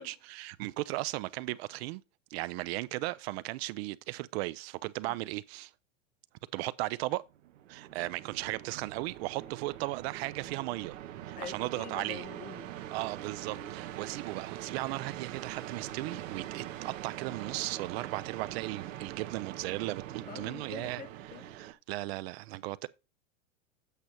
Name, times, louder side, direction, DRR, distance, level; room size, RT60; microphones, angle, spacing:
voice 1, 0.0-2.0 2.3-5.7 6.5-7.2 7.7-11.0 11.2-12.2 12.9-21.0 21.5-22.9, right 19 dB, 55° right, 0.5 m, -36 dB
sound 1, 7.3-21.7, right 12 dB, 75° right, 0.9 m, -43 dB
voice 2, 11.3-12.7 14.1-14.2 20.3-21.5, left 8 dB, 25° left, 0.4 m, -46 dB
8.3 x 5.2 x 4.3 m
hypercardioid pair, 110°, 38 cm